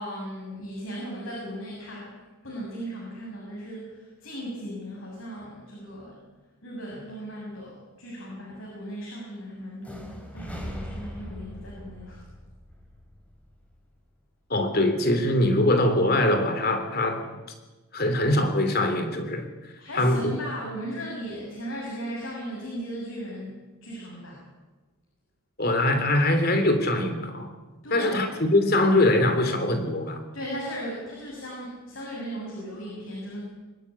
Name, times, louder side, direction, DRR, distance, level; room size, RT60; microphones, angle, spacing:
voice 1, 0.0-2.2 2.4-6.2 6.6-12.2 19.8-24.4 27.8-28.3 30.3-33.4, equal, 65° left, -3 dB, 7.2 m, -37 dB
sound 1, 9.8-13.7, equal, 5° left, 3.7 m, -40 dB
voice 2, 14.5-17.3 17.9-19.5 19.9-20.3 25.6-27.5 27.9-30.2, left 1 dB, 45° left, 7 dB, 3.2 m, -22 dB
24.0 x 13.5 x 9.9 m, 1.2 s
head